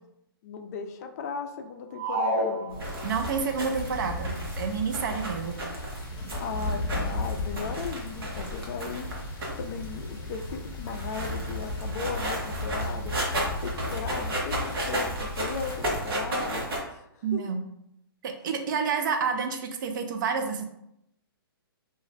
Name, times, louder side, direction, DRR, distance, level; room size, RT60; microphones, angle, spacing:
voice 1, 0.4-2.8 5.2-5.4 6.4-9.1 9.6-13.2 13.6-17.4, left 5 dB, 40° left, 5 dB, 0.4 m, -37 dB
sound 1, 1.9-3.4, equal, 10° right, 0.7 m, -29 dB
sound 2, 2.7-16.8, right 1 dB, 70° right, 1.0 m, -34 dB
sound 3, 2.8-16.0, left 2 dB, 25° left, 0.8 m, -36 dB
voice 2, 3.0-5.6 17.2-17.6 18.2-20.7, right 5 dB, 55° right, 5 dB, 0.5 m, -29 dB
2.4 x 2.0 x 3.9 m, 0.78 s
hypercardioid pair, 135°, 13 cm